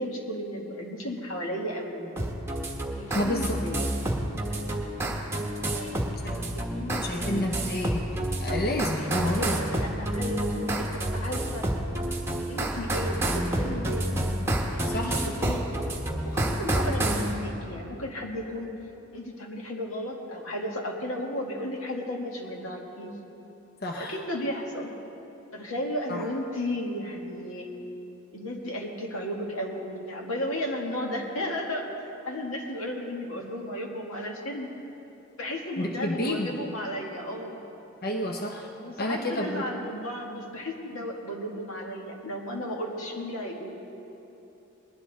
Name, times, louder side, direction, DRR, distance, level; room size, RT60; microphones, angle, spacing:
voice 1, 0.0-2.1 3.0-3.9 5.7-6.0 6.5-7.4 9.0-11.7 12.5-14.3 14.7-15.6 16.2-18.7 19.1-23.1 23.9-24.9 25.5-27.7 28.3-31.9 32.2-34.7 35.4-37.6 38.8-43.8, left 1 dB, 85° left, 0 dB, 1.8 m, -34 dB
sound 1, 2.2-17.3, right 1 dB, 10° right, 1.1 m, -29 dB
voice 2, 3.1-3.6 6.2-6.4 7.0-9.6 14.9-15.3 23.8-24.1 26.1-26.2 35.8-36.5 38.0-38.7 39.0-39.6, left 1 dB, 50° left, 1 dB, 0.8 m, -30 dB
20.0 x 11.0 x 4.1 m, 3.0 s
head